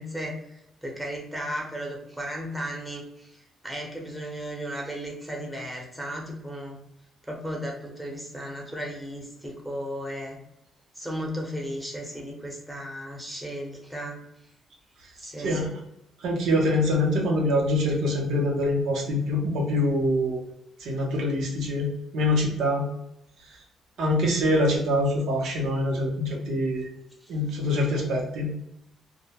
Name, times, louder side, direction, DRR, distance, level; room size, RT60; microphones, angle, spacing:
voice 1, 0.0-3.4 3.6-6.8 7.3-10.4 10.9-14.2 15.2-15.7 27.2-27.3, equal, ahead, -1 dB, 0.7 m, -35 dB
voice 2, 16.2-20.4 20.8-22.9 24.0-26.9 27.3-28.5, left 1 dB, 80° right, -1 dB, 0.7 m, -24 dB
2.2 x 2.1 x 2.8 m, 0.81 s
cardioid pair, 90°, 0 cm